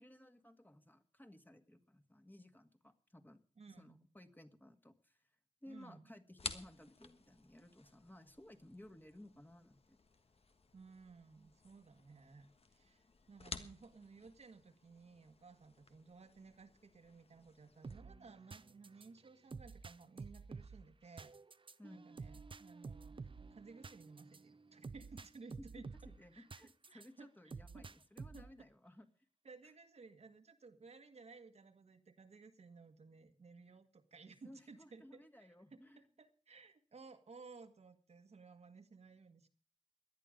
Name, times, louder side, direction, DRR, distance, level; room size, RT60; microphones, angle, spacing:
voice 1, 0.0-3.4 3.7-5.3 5.6-10.0 21.8-22.1 25.6-29.1 34.4-36.0, left 1 dB, 15° left, 7 dB, 1.8 m, -58 dB
voice 2, 3.6-4.1 5.7-6.1 10.7-21.3 21.9-25.9 26.3-26.5 26.9-27.3 27.7-27.9 28.3-28.5 29.4-39.5, right 4 dB, 85° right, 6 dB, 1.7 m, -58 dB
sound 1, 6.4-18.0, left 4 dB, 70° left, 1.4 m, -53 dB
sound 2, 17.8-27.1 27.5-28.6, right 4 dB, 55° right, 0.7 m, -51 dB
18.0 x 11.5 x 5.2 m, 0.39 s
wide cardioid pair, 75°, 11 cm